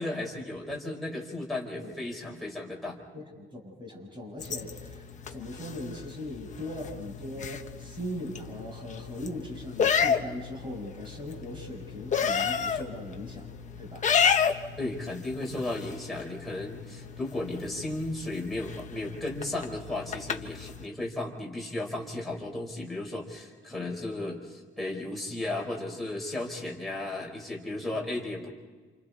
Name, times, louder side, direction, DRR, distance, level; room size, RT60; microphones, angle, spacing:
voice 1, 0.0-3.0 14.8-28.5, left 2 dB, ahead, -3 dB, 4.7 m, -35 dB
voice 2, 3.1-13.5 13.8-14.1 23.7-23.9 27.9-28.0, left 1 dB, 25° right, 0 dB, 7.0 m, -39 dB
sound 1, 4.4-20.8, left 7 dB, 35° left, 1.0 m, -32 dB
29.0 x 28.5 x 4.2 m, 1.4 s
cardioid pair, 170°, 21 cm